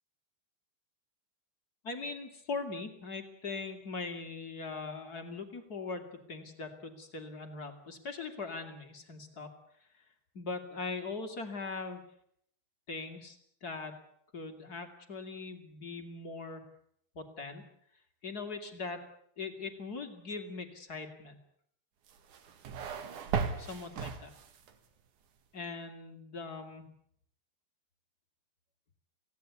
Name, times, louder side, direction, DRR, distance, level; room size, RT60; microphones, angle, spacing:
voice 1, 1.8-9.5 10.3-12.0 12.9-14.0 14.3-16.6 17.1-17.6 18.2-19.0 19.4-21.4 23.6-24.3 25.5-26.8, left 4 dB, 30° left, 5 dB, 2.2 m, -41 dB
sound 1, 22.1-24.8, right 6 dB, 55° right, 2.7 m, -36 dB
26.5 x 17.5 x 8.3 m, 0.68 s
omnidirectional pair, 5.1 m